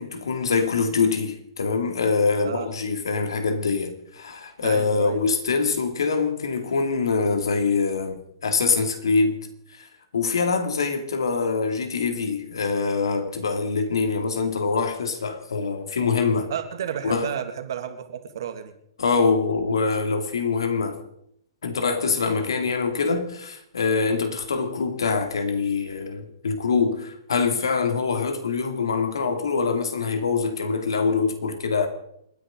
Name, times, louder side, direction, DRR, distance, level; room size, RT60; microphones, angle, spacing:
voice 1, 0.0-9.4 9.7-9.9 10.1-16.5 17.0-17.3 19.0-21.0 21.6-31.9, left 4 dB, 75° left, 2.6 m, -24 dB
voice 2, 4.6-5.2 16.5-18.7, right 9 dB, 65° right, 2.2 m, -32 dB
29.0 x 10.0 x 3.9 m
hypercardioid pair, 120°, 2 cm